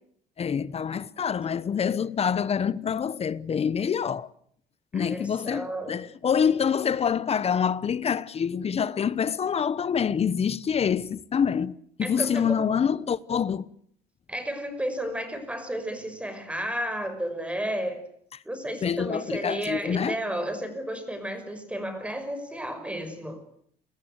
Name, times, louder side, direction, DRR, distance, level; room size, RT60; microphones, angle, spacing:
voice 1, 0.4-4.3 4.9-13.7 18.8-20.2, left 7 dB, 35° left, 1.0 m, -26 dB
voice 2, 4.9-6.0 12.0-12.6 14.3-18.0 18.4-23.4, right 1 dB, 5° right, 5.9 m, -32 dB
29.0 x 20.0 x 8.1 m
cardioid pair, 110°, 17 cm